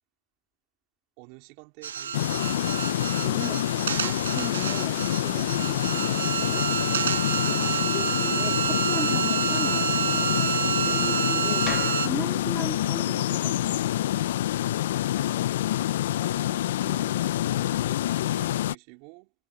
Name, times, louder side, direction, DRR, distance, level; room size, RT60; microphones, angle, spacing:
voice 1, 1.2-2.5 16.2-19.3, right 31 dB, 35° right, 3.9 m, -49 dB
sound 1, 1.8-12.1, right 9 dB, 65° right, 0.9 m, -28 dB
sound 2, 2.1-18.7, left 13 dB, 50° left, 0.8 m, -27 dB
voice 2, 3.2-3.7 4.0-6.7 7.4-10.5 10.8-13.9, right 1 dB, ahead, 3.4 m, -38 dB
sound 3, 11.6-15.8, left 10 dB, 20° left, 1.0 m, -43 dB
hypercardioid pair, 140°, 0 cm